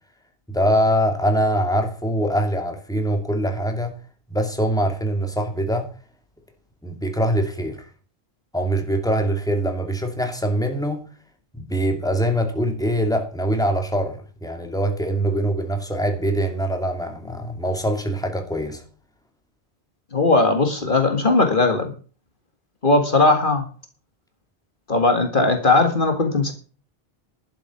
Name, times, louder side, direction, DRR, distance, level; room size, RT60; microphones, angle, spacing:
voice 1, 0.5-3.9 4.3-5.9 6.8-7.8 8.5-11.0 11.5-18.8, right 1 dB, 5° left, 2.4 m, -23 dB
voice 2, 20.1-21.9 22.8-23.7 24.9-26.5, left 3 dB, 50° left, 2.1 m, -18 dB
12.0 x 7.7 x 7.1 m
omnidirectional pair, 1.1 m